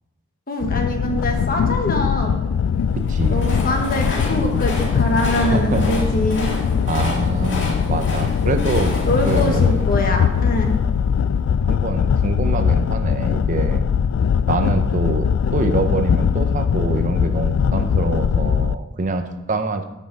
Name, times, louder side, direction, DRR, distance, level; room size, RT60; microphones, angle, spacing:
voice 1, 0.5-2.4 3.3-6.5 9.0-10.7, left 1 dB, 45° left, 3 dB, 1.3 m, -23 dB
sound 1, 0.6-18.7, left 7 dB, 80° left, 0.3 m, -20 dB
Train, 2.9-11.0, left 2 dB, 65° left, 1.9 m, -31 dB
voice 2, 2.9-3.4 5.4-6.0 6.9-8.9 9.2-9.9 11.6-13.8 14.4-19.8, right 3 dB, 40° right, 8 dB, 0.6 m, -25 dB
8.9 x 5.5 x 5.3 m, 1.0 s
head